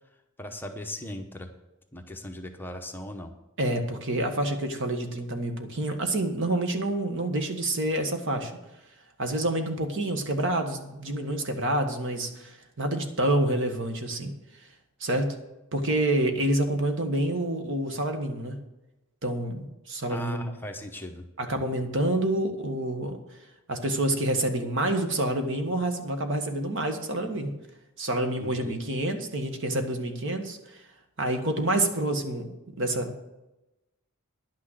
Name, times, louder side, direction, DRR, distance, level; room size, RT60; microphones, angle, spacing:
voice 1, 0.4-1.5 1.9-3.3 20.1-21.2 28.4-28.8, left 1 dB, 10° left, 4 dB, 0.9 m, -38 dB
voice 2, 3.6-8.5 9.2-14.3 15.0-15.3 15.7-18.6 19.2-20.4 21.4-23.2 23.7-27.5 28.0-30.8 31.2-33.2, right 1 dB, 60° right, 6 dB, 1.4 m, -28 dB
10.5 x 6.2 x 8.0 m, 0.96 s
head